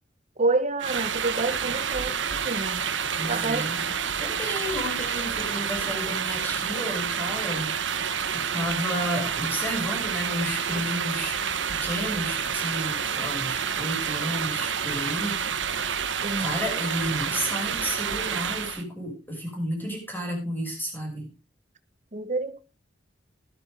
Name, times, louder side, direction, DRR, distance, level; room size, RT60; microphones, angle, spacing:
voice 1, 0.4-2.8 3.3-3.7 16.2-16.6 22.1-22.6, right 3 dB, 40° right, 1.2 m, -28 dB
sound 1, 0.8-18.8, right 7 dB, 85° right, 1.3 m, -29 dB
voice 2, 3.2-3.9 4.2-7.7 8.3-11.4 11.7-16.0 16.4-21.3, equal, 10° left, 6.3 m, -32 dB
14.0 x 12.0 x 3.5 m
head